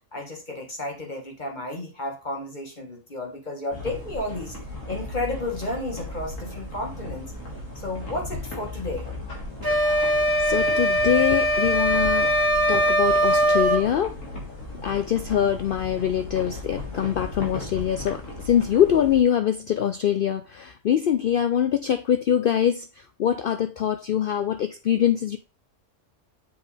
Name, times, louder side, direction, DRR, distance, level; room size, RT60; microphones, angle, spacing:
voice 1, 0.1-4.5 4.9-7.3 7.7-9.1, left 2 dB, 35° left, 1.7 m, -32 dB
sound 1, 3.7-19.2, left 2 dB, 80° left, 2.7 m, -36 dB
sound 2, 9.6-13.9, equal, 15° right, 1.2 m, -21 dB
voice 2, 10.4-12.3 12.7-14.2 14.8-22.9 23.2-25.4, left 9 dB, 60° left, 0.6 m, -23 dB
7.2 x 5.3 x 3.3 m
omnidirectional pair, 1.3 m